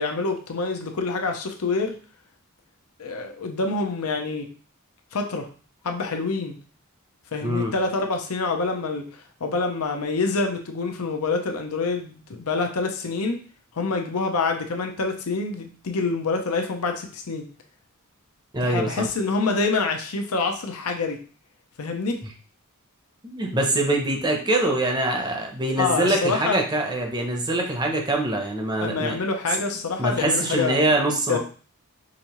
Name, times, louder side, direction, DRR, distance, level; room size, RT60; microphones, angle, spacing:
voice 1, 0.0-2.0 3.0-4.5 5.1-5.5 5.8-6.6 7.3-9.0 9.4-13.4 13.7-17.4 18.6-21.2 21.8-22.2 25.8-26.6 28.8-31.4, left 3 dB, 85° left, 4 dB, 0.7 m, -26 dB
voice 2, 7.4-7.7 18.5-19.1 23.2-29.2 29.7-31.4, right 2 dB, 20° right, 2 dB, 0.7 m, -24 dB
5.1 x 2.6 x 3.0 m, 0.40 s
head